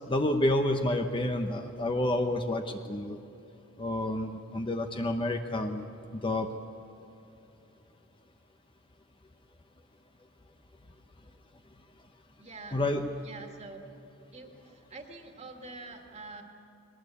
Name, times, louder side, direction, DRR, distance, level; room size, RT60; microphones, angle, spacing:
voice 1, 0.1-3.2 3.8-5.8 6.1-6.5 12.7-13.0, left 1 dB, 25° left, 5 dB, 0.9 m, -29 dB
voice 2, 12.4-12.8 13.2-13.8 14.3-16.4, right 3 dB, 30° right, 3 dB, 2.0 m, -46 dB
21.0 x 19.0 x 8.4 m, 2.8 s
head